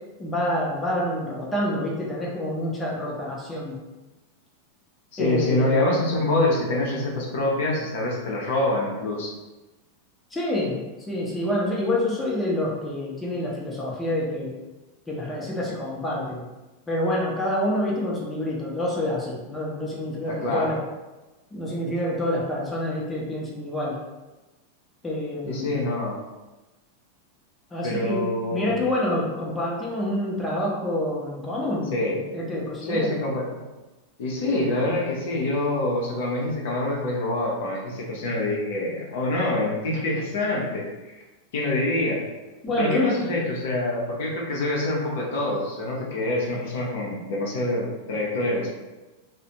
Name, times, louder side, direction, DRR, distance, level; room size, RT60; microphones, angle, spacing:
voice 1, 0.2-3.8 5.2-5.7 10.3-14.6 15.1-16.4 16.9-20.8 21.5-24.0 25.0-25.7 27.7-28.3 28.5-33.3 42.6-43.2, left 1 dB, 10° left, -4 dB, 0.6 m, -27 dB
voice 2, 5.1-9.3 20.3-20.7 25.4-26.2 27.8-28.7 31.9-32.2 32.9-33.5 34.2-41.2 41.5-42.2 42.8-48.7, left 1 dB, 55° left, -3 dB, 0.6 m, -26 dB
2.4 x 2.0 x 2.8 m, 1.1 s
figure-of-eight pair, 90°, 0 cm